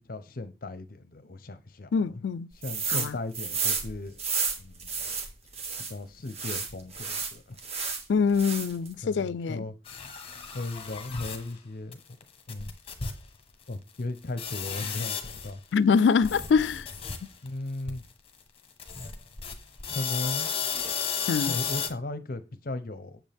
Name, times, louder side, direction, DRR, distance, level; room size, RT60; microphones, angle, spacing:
voice 1, 0.0-2.2 2.5-4.2 4.6-5.1 5.9-7.6 9.0-9.7 10.5-12.0 12.5-12.7 13.7-15.6 17.4-18.1 19.9-20.5 21.4-23.2, left 2 dB, 55° left, 0.7 m, -37 dB
voice 2, 1.9-2.5 2.9-3.2 8.1-9.7 15.7-16.9 21.3-21.6, left 5 dB, 85° left, 0.4 m, -24 dB
sound 1, 2.6-3.1 3.3-5.9 6.3-8.0 8.3-8.9, right 5 dB, 35° right, 1.6 m, -31 dB
sound 2, 9.9-11.5 11.9-12.0 12.2-12.3 12.5-13.3 13.5-13.6 14.4-15.6 16.0-17.5 17.9-18.1 18.8-21.9, left 6 dB, 35° left, 1.2 m, -34 dB
8.1 x 7.3 x 3.5 m
head